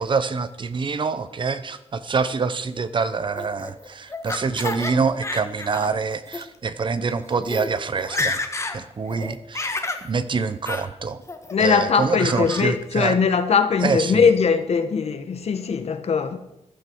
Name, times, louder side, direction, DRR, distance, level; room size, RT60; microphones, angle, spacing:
voice 1, 0.0-8.4 8.7-11.2 11.6-13.2 13.8-14.3, right 5 dB, 45° right, 0.8 m, -26 dB
Laughter, 3.4-4.9 5.2-5.9 6.3-6.4 7.1-7.2 7.4-7.7 8.0-8.8 9.1-10.1 10.7-10.9 11.3-11.7 12.2-12.7, left 3 dB, 25° left, 1.5 m, -29 dB
voice 2, 11.5-16.4, left 6 dB, 60° left, 1.3 m, -20 dB
14.5 x 12.0 x 4.6 m
wide cardioid pair, 130°, 12 cm